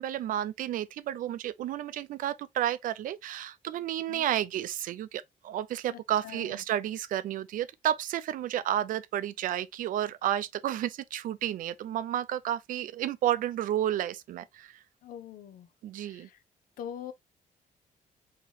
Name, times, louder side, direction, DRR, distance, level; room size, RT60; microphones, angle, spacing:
voice 1, 0.0-14.8 15.8-16.3, right 12 dB, 70° right, 0.4 m, -31 dB
voice 2, 5.9-6.6 15.0-15.7 16.0-16.4 16.8-17.1, left 9 dB, 75° left, 0.6 m, -43 dB
4.6 x 2.9 x 2.8 m
cardioid pair, 180°, 15 cm